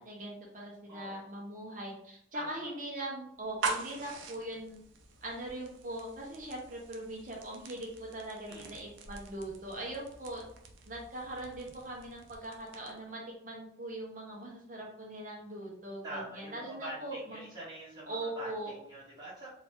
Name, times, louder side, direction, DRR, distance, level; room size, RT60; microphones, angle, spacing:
voice 1, 0.0-4.8 5.2-10.4 10.9-17.5 18.1-18.7, right 1 dB, 40° right, -3 dB, 1.0 m, -41 dB
sound 1, 3.4-13.1, right 4 dB, 90° right, 0.5 m, -43 dB
voice 2, 8.5-8.8 16.0-19.5, right 1 dB, 20° right, -9 dB, 1.2 m, -45 dB
2.9 x 2.6 x 3.5 m, 0.71 s
head